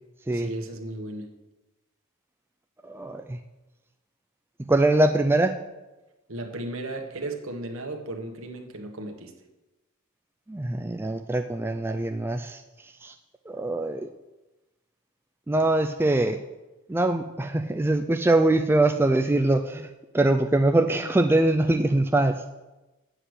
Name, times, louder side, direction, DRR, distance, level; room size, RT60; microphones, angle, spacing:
voice 1, 0.3-1.3 6.3-9.3, right 2 dB, 65° right, 4 dB, 1.3 m, -35 dB
voice 2, 2.8-3.4 4.7-5.6 10.5-12.6 13.0-13.1 13.5-14.1 15.5-16.4 16.9-22.4, right 2 dB, 10° right, 5 dB, 0.3 m, -23 dB
7.9 x 6.4 x 8.1 m, 1.1 s
head